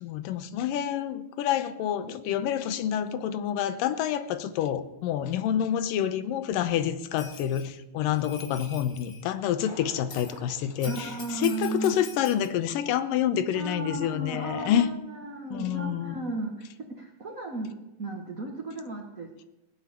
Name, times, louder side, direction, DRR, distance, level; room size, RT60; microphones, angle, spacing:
voice 1, 0.0-14.9 15.5-16.2, left 10 dB, 80° left, 12 dB, 2.5 m, -28 dB
Bell, 7.2-7.6 8.1-9.2 10.1-10.4 10.8-12.5, left 4 dB, 35° left, 2.2 m, -45 dB
Thunder, 9.6-12.1 12.4-12.5 13.1-13.2, equal, 10° left, 1.6 m, -51 dB
voice 2, 10.8-11.9 13.5-19.4, right 2 dB, 70° right, 1 dB, 0.7 m, -35 dB
18.0 x 8.4 x 8.2 m, 0.95 s
omnidirectional pair, 4.1 m